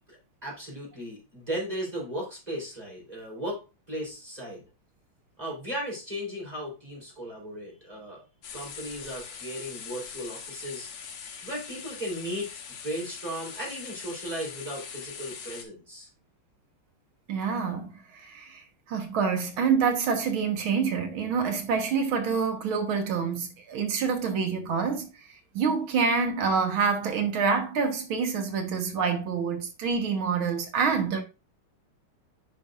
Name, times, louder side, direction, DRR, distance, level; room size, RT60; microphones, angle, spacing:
voice 1, 0.1-4.6 5.4-8.2 8.5-10.9 11.4-12.5 12.8-16.1, equal, 15° right, 3.5 m, -36 dB
sound 1, 8.4-15.6, left 6 dB, 85° left, 2.1 m, -42 dB
voice 2, 17.3-25.1 25.5-31.2, right 5 dB, 70° right, 2.0 m, -27 dB
9.7 x 5.3 x 2.4 m
omnidirectional pair, 2.4 m